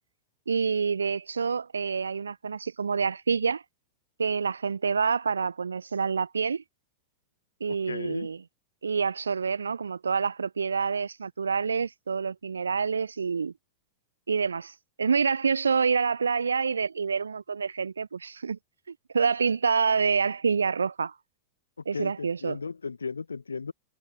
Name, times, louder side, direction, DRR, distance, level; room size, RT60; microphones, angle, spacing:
voice 1, 0.5-3.6 4.2-6.6 7.6-8.4 8.8-13.5 14.3-18.6 19.1-21.1 21.9-22.6, right 5 dB, 75° right, 0.7 m, -27 dB
voice 2, 7.7-8.3 21.9-23.7, left 5 dB, 75° left, 1.7 m, -35 dB
figure-of-eight pair, 90°, 0 cm